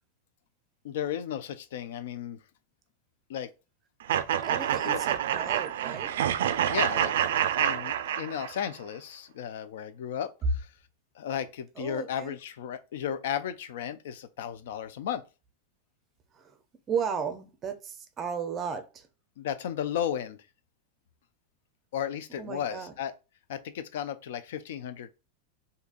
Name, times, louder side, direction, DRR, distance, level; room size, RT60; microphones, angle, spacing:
voice 1, 0.8-2.4 3.3-3.5 4.9-5.0 6.7-7.3 7.6-10.7 11.2-15.2 19.4-20.4 21.9-23.1 23.5-25.1, left 9 dB, 70° left, 0.3 m, -34 dB
sound 1, 4.1-8.7, right 10 dB, 75° right, 0.3 m, -27 dB
voice 2, 4.3-6.1 11.8-12.3 16.3-16.6 16.9-19.1 22.4-22.9, right 7 dB, 20° right, 0.5 m, -35 dB
3.7 x 2.7 x 2.4 m
supercardioid pair, 160°, 0 cm